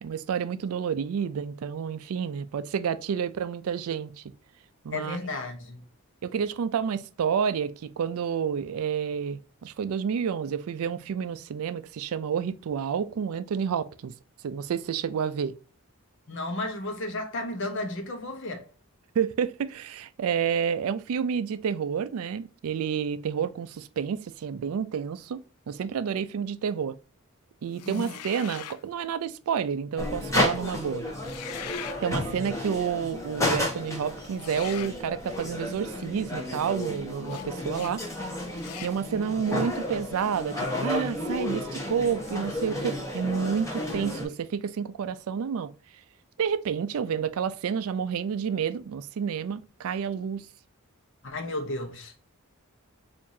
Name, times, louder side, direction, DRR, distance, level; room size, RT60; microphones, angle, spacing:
voice 1, 0.0-4.2 4.8-5.2 6.2-14.1 14.4-15.5 19.2-25.4 25.7-26.9 27.6-31.0 32.0-38.0 38.8-45.7 46.4-50.5, right 7 dB, 75° right, 0.3 m, -29 dB
voice 2, 4.9-5.9 16.3-18.6 27.8-28.2 51.2-52.2, left 2 dB, 55° left, 0.8 m, -33 dB
sound 1, 27.7-28.8 31.1-32.0 34.3-35.0 37.3-37.4 37.7-37.9 38.6-39.0, left 11 dB, 85° left, 0.4 m, -41 dB
sound 2, 30.0-44.3, left 1 dB, 15° left, 0.9 m, -32 dB
4.6 x 2.6 x 2.6 m
head